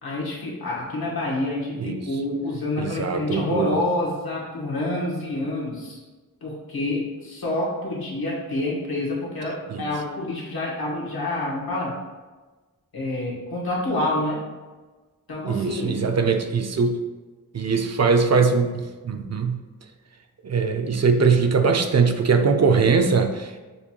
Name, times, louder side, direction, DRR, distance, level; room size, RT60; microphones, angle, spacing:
voice 1, 0.0-6.0 6.4-12.0 12.9-14.5 15.3-16.0, left 1 dB, 90° left, -5 dB, 1.2 m, -27 dB
voice 2, 2.8-3.8 9.7-9.9 15.4-17.0 17.5-19.6 20.4-23.6, right 5 dB, 50° right, 6 dB, 0.4 m, -21 dB
6.7 x 2.3 x 2.8 m, 1.3 s
wide cardioid pair, 70°, 36 cm